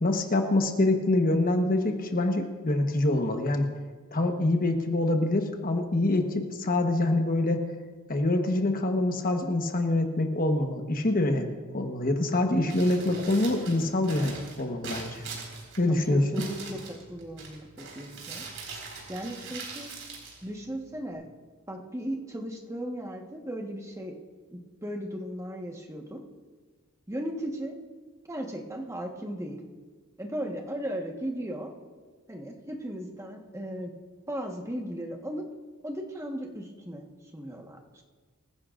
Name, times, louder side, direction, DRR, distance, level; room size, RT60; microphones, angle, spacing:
voice 1, 0.0-3.7 4.1-7.6 8.1-11.5 11.7-15.2 15.8-16.4, left 2 dB, 40° left, 4 dB, 1.2 m, -25 dB
Crumpling crinkling, 12.6-21.1, right 4 dB, 65° right, 4.5 m, -42 dB
voice 2, 15.8-16.8 17.1-18.4 19.1-19.9 20.4-21.3 21.7-24.1 24.5-26.2 27.1-27.7 28.3-29.6 30.2-31.7 32.3-33.9 34.3-35.5 35.8-37.1 37.3-38.0, equal, 15° right, 1 dB, 1.3 m, -36 dB
25.0 x 15.5 x 2.5 m, 1.5 s
head